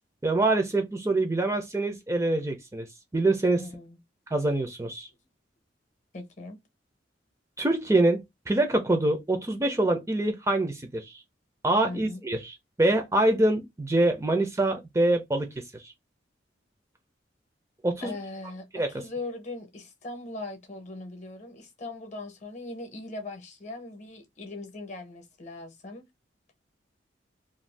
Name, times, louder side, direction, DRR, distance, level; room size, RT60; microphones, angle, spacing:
voice 1, 0.2-2.9 3.1-3.6 4.3-5.1 7.6-11.1 11.6-15.9 17.8-18.2 18.7-18.9, right 2 dB, 15° right, 0.4 m, -25 dB
voice 2, 3.6-4.0 6.1-6.6 11.8-12.2 18.0-26.1, left 2 dB, 40° left, 0.7 m, -40 dB
2.5 x 2.3 x 3.2 m
head